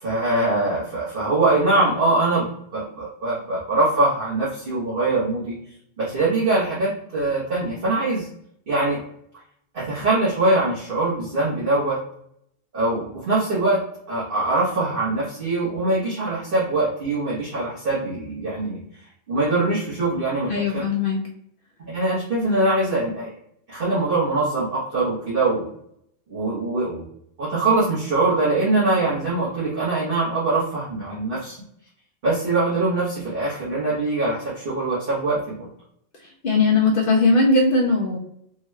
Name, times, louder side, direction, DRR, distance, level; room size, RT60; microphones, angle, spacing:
voice 1, 0.0-5.5 6.0-8.3 8.7-9.0 9.7-12.0 12.7-13.8 14.1-18.8 19.3-20.8 21.9-23.3 23.7-25.7 26.3-27.0 27.4-31.6 32.2-35.7, right 2 dB, 50° right, -8 dB, 1.2 m, -23 dB
voice 2, 20.5-21.2 36.4-38.2, left 3 dB, 55° left, -2 dB, 0.7 m, -19 dB
3.5 x 2.2 x 3.1 m, 0.72 s
omnidirectional pair, 1.2 m